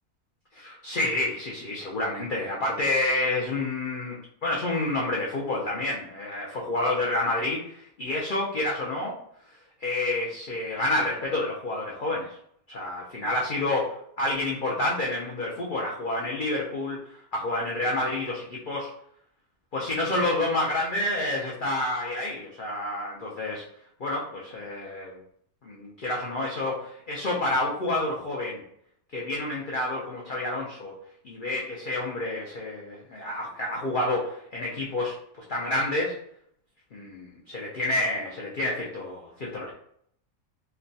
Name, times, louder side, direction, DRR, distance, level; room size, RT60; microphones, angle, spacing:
voice 1, 0.5-9.1 9.8-12.4 12.7-18.9 19.7-23.6 24.0-25.2 25.6-28.6 29.1-30.9 31.2-35.2 35.5-36.2 36.9-39.7, left 2 dB, 80° left, -4 dB, 0.4 m, -29 dB
3.0 x 2.2 x 2.6 m, 0.68 s
omnidirectional pair, 1.5 m